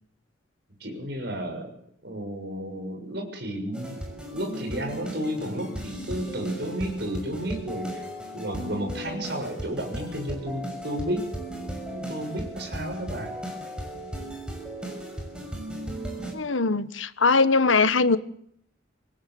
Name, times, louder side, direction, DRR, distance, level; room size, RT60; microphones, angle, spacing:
voice 1, 0.8-1.7 2.0-4.0 4.3-8.1 8.3-13.3, equal, 55° right, 6.8 m, -32 dB
sound 1, 3.7-16.3, right 1 dB, 5° right, 6.3 m, -36 dB
voice 2, 16.3-18.2, left 4 dB, 85° left, 1.4 m, -21 dB
27.0 x 19.5 x 7.9 m
head